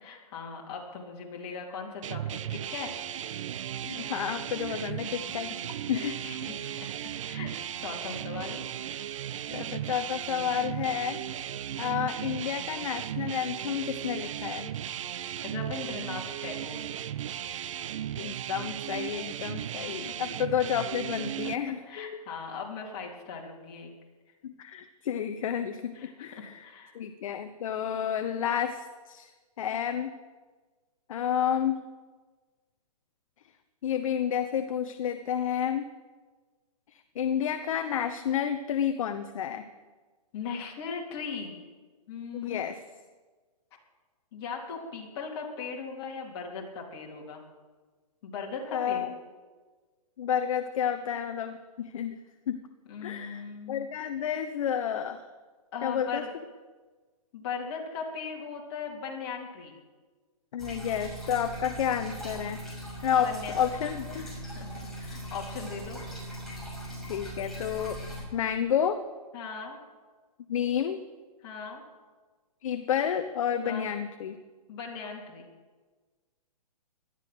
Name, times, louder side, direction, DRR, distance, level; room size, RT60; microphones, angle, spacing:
voice 1, 0.0-2.9 4.7-4.9 5.9-6.9 7.2-7.5 7.8-8.6 9.4-9.5 15.4-16.9 20.0-20.1 20.5-20.7 21.2-21.5 21.9-23.9 25.9-26.9 40.3-41.6 42.1-42.6 44.3-47.4 48.2-49.0 52.9-53.9 55.7-56.3 57.3-59.8 63.2-63.6 64.2-64.7 65.0-66.0 69.3-69.8 71.4-71.8 73.6-73.9 74.7-75.5, left 5 dB, 45° left, -1 dB, 3.7 m, -39 dB
sound 1, 2.0-21.6, right 11 dB, 55° right, 0.7 m, -36 dB
voice 2, 3.8-5.5 5.9-6.1 9.5-11.2 11.8-14.7 18.2-22.2 24.4-26.6 26.9-29.3 29.6-30.1 31.1-31.8 33.8-35.9 36.9-39.6 42.3-42.8 48.7-49.1 50.2-52.2 52.5-52.6 53.0-55.3 55.8-56.2 60.5-62.6 63.0-64.3 67.1-68.0 68.3-69.0 70.5-71.0 72.6-74.4, left 9 dB, 60° left, 9 dB, 1.0 m, -30 dB
sound 2, 60.6-68.2, equal, ahead, 6.3 m, -40 dB
18.5 x 12.5 x 6.2 m, 1.4 s
hypercardioid pair, 150°, 20 cm